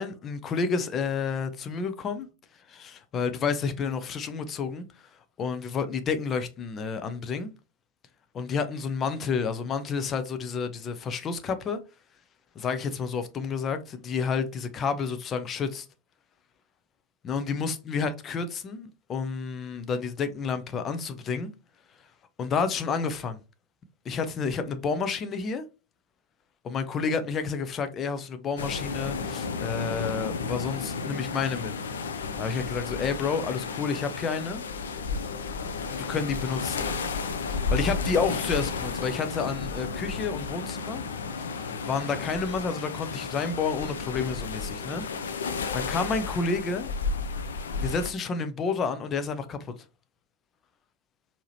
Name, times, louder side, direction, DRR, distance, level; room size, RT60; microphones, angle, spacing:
voice 1, 0.0-2.3 2.7-5.1 5.4-7.5 8.3-11.8 12.6-15.9 17.2-21.5 22.4-23.4 24.0-25.6 26.6-31.7 32.4-34.6 35.9-36.9 37.7-41.0 41.8-45.0 45.7-46.9 47.8-49.7, left 5 dB, 25° left, 0.6 m, -30 dB
sound 1, 28.6-48.1, left 4 dB, 65° left, 0.6 m, -32 dB
4.6 x 2.8 x 3.0 m
figure-of-eight pair, 90°, 0 cm